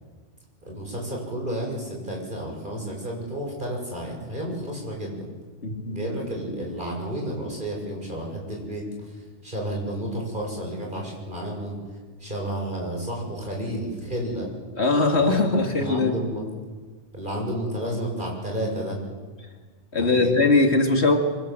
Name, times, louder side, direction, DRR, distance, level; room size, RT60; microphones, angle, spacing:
voice 1, 0.6-5.2 5.9-11.8 12.2-14.5 15.1-15.4 15.8-16.4 17.1-19.0 20.0-20.3, right 1 dB, 40° right, -1 dB, 6.9 m, -31 dB
voice 2, 5.6-6.0 14.8-16.2 19.9-21.2, left 3 dB, 60° left, 4 dB, 2.6 m, -20 dB
24.5 x 24.5 x 7.7 m, 1.5 s
omnidirectional pair, 1.2 m